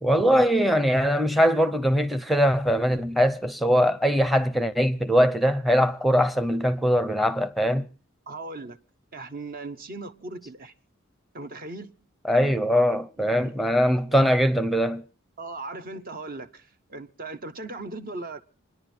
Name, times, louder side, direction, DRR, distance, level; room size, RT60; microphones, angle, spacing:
voice 1, 0.0-7.9 12.2-15.0, equal, ahead, 0.7 m, -21 dB
voice 2, 8.3-8.8 9.1-10.7 11.3-11.9 13.2-13.5 14.1-14.2 15.4-18.4, right 2 dB, 45° right, 1.0 m, -38 dB
27.5 x 10.5 x 4.4 m
head